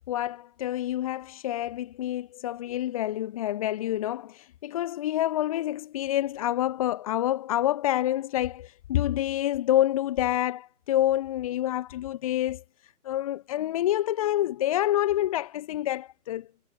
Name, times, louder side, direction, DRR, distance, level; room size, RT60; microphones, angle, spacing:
voice 1, 0.0-16.5, left 13 dB, 20° left, 5.1 m, -27 dB
figure-of-eight pair, 160°, 47 cm